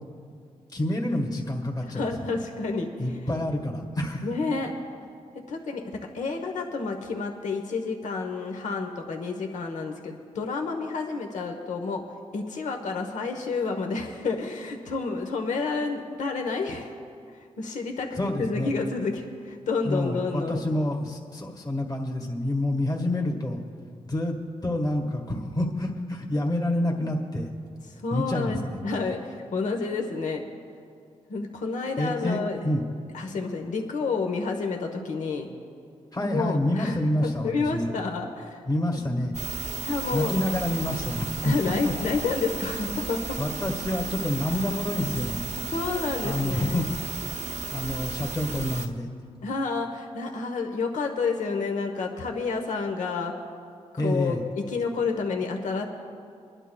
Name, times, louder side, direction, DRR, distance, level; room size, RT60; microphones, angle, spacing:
voice 1, 0.7-2.3 3.0-4.3 18.2-18.7 19.8-23.6 24.0-24.4 24.6-27.5 28.1-28.8 32.0-32.8 36.1-37.9 38.6-39.3 40.1-41.9 43.4-45.5 46.2-46.9 47.7-49.1 54.0-54.4, left 1 dB, 30° left, 0 dB, 1.6 m, -28 dB
voice 2, 1.8-3.4 4.2-4.7 5.5-12.0 12.3-16.9 17.6-18.1 18.4-20.6 28.0-30.4 31.3-32.6 33.1-35.5 36.2-38.6 38.9-39.0 39.8-40.3 41.4-43.4 45.7-46.8 49.4-53.3 54.0-55.9, left 4 dB, 85° left, 3 dB, 1.0 m, -30 dB
sound 1, 39.3-48.9, right 4 dB, 70° right, 0.7 m, -34 dB
25.5 x 11.0 x 2.2 m, 2.3 s
cardioid pair, 70°, 12 cm